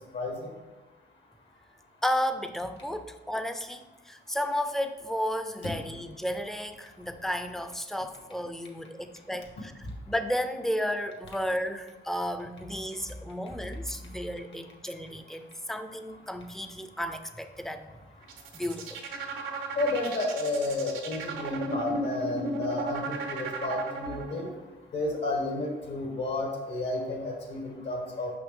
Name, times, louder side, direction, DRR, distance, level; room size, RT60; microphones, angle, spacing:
voice 1, 0.1-0.5 5.6-5.7 19.8-24.5 24.9-28.3, left 2 dB, 65° left, 0 dB, 1.8 m, -31 dB
voice 2, 2.0-17.9 18.5-19.0, equal, ahead, 8 dB, 0.5 m, -33 dB
sound 1, 18.2-24.5, right 3 dB, 90° right, 0.9 m, -35 dB
5.8 x 5.7 x 3.7 m, 1.2 s
cardioid pair, 90°, 20 cm